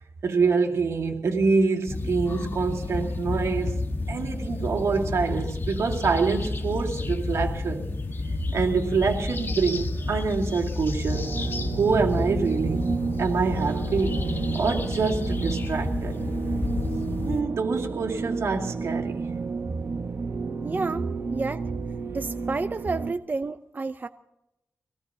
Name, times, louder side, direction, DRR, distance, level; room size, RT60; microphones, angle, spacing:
voice 1, 0.2-3.8 4.1-7.9 8.3-11.3 11.8-12.8 13.2-14.3 14.5-16.1 17.2-19.2, right 4 dB, 85° right, 1 dB, 2.4 m, -26 dB
sound 1, 1.9-17.4, left 3 dB, 50° left, 1.5 m, -31 dB
sound 2, 11.1-23.1, right 4 dB, 65° right, 1.0 m, -31 dB
voice 2, 20.6-21.6 22.1-24.1, right 3 dB, 40° right, 9 dB, 0.6 m, -30 dB
24.0 x 18.0 x 2.8 m, 0.84 s
wide cardioid pair, 75°, 5 cm